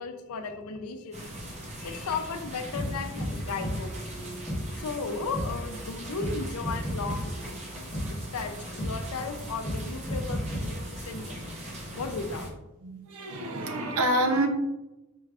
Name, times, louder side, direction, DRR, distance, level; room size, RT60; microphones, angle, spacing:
voice 1, 0.0-4.2 4.8-7.6 8.3-11.4 12.0-12.5, left 4 dB, 80° left, 7 dB, 0.5 m, -35 dB
sound 1, 1.1-12.5, right 1 dB, 30° right, 0.8 m, -40 dB
sound 2, 2.7-2.9 3.2-3.3 3.6-3.7 4.5-4.6 5.3-5.5 6.2-6.3 6.6-7.2 7.9-8.1 8.8-8.9 9.6-9.8 10.1-10.6, equal, 25° left, 1.5 m, -31 dB
voice 2, 12.8-14.5, right 1 dB, 75° right, 3 dB, 0.7 m, -27 dB
4.5 x 3.3 x 2.4 m, 1.0 s
head